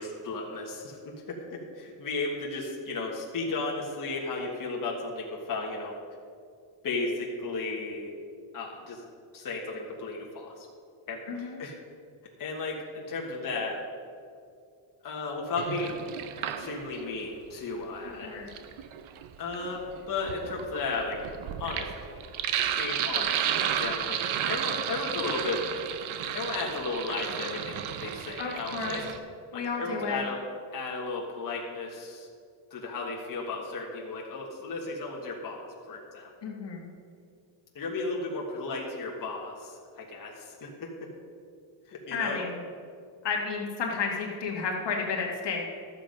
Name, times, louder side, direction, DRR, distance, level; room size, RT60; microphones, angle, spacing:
voice 1, 0.0-6.0 6.8-8.2 8.5-9.0 9.3-10.7 11.1-11.7 12.4-13.8 15.0-16.0 16.4-18.3 19.4-21.2 21.6-21.9 22.8-25.6 26.3-29.1 29.5-30.4 30.7-32.3 32.7-36.3 37.7-41.1 41.9-42.5, left 3 dB, 45° left, -3 dB, 1.6 m, -34 dB
voice 2, 11.3-11.6 18.2-18.5 28.4-29.0 29.5-30.2 36.4-36.9 42.1-42.6 43.2-45.8, left 5 dB, 60° left, 0 dB, 1.8 m, -32 dB
Sink (filling or washing), 15.6-17.1 18.2-29.2, right 9 dB, 85° right, 0.8 m, -33 dB
12.5 x 7.6 x 5.2 m, 2.3 s
cardioid pair, 130°, 48 cm